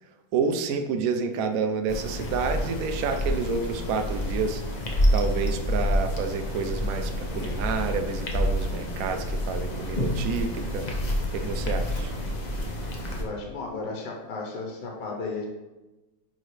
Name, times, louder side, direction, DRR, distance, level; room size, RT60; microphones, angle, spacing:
voice 1, 0.3-4.6 5.1-10.9 11.3-12.1, right 5 dB, 65° right, 6 dB, 0.9 m, -29 dB
sound 1, 1.9-13.2, equal, 45° left, 0.5 m, -28 dB
voice 2, 13.1-15.5, left 3 dB, 70° left, 0 dB, 1.7 m, -34 dB
9.4 x 4.0 x 3.3 m, 1.1 s
omnidirectional pair, 2.0 m